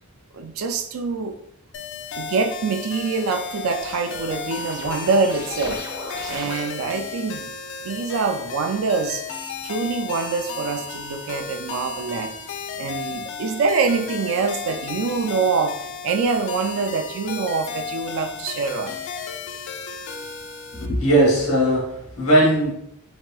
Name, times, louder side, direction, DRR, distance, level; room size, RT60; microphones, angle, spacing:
voice 1, 0.3-1.3 2.2-5.8 6.3-7.5 7.8-9.2 9.6-12.3 12.8-19.0, right 4 dB, 85° right, 7 dB, 0.4 m, -25 dB
sound 1, 1.7-20.9, left 5 dB, 60° left, 0.3 m, -34 dB
sound 2, 2.1-7.1, right 1 dB, 15° right, 0.4 m, -39 dB
voice 2, 20.7-22.7, right 1 dB, 85° left, -2 dB, 1.1 m, -18 dB
3.1 x 2.8 x 2.2 m, 0.76 s
head